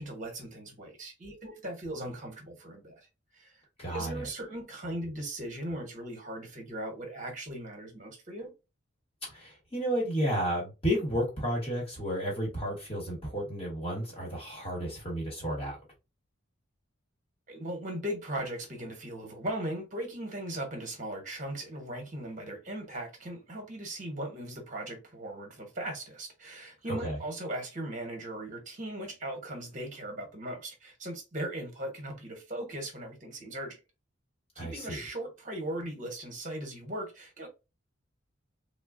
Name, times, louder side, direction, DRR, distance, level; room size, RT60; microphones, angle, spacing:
voice 1, 0.0-3.1 3.3-8.5 17.5-33.8 34.6-37.5, right 1 dB, 40° right, 1.1 m, -38 dB
voice 2, 3.8-4.3 9.3-15.8 26.9-27.2 34.6-35.0, equal, 30° left, 1.1 m, -32 dB
3.6 x 2.1 x 2.4 m
head